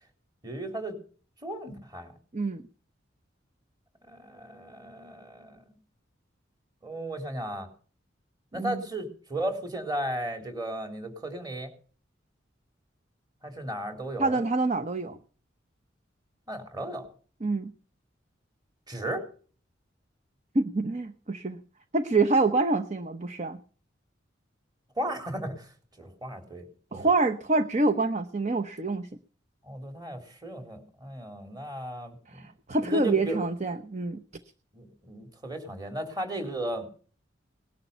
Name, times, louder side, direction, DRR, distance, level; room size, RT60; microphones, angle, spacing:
voice 1, 0.4-1.0 1.4-2.1 4.1-5.6 6.8-7.7 8.5-11.7 13.4-14.4 16.5-17.1 18.9-19.3 25.0-25.7 26.0-26.6 26.9-27.0 29.6-32.5 32.8-33.4 34.7-36.9, right 1 dB, 20° right, 5 dB, 3.6 m, -35 dB
voice 2, 8.5-8.8 14.2-15.2 17.4-17.7 20.5-21.6 21.9-23.6 26.9-29.1 32.3-34.2, right 3 dB, 35° right, 10 dB, 0.9 m, -26 dB
19.5 x 11.5 x 5.6 m, 0.42 s
head